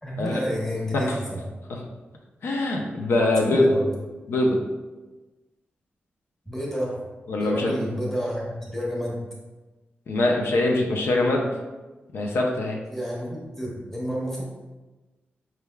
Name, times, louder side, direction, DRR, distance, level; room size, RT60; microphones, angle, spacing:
voice 1, 0.0-1.4 3.5-3.9 6.5-7.0 7.4-9.2 12.8-14.4, equal, 10° left, -4 dB, 1.0 m, -30 dB
voice 2, 2.4-3.7 4.3-4.6 7.3-7.7 10.1-11.5 12.1-12.8, left 2 dB, 85° left, 0 dB, 0.6 m, -23 dB
5.7 x 3.3 x 2.3 m, 1.2 s
wide cardioid pair, 150°, 4 cm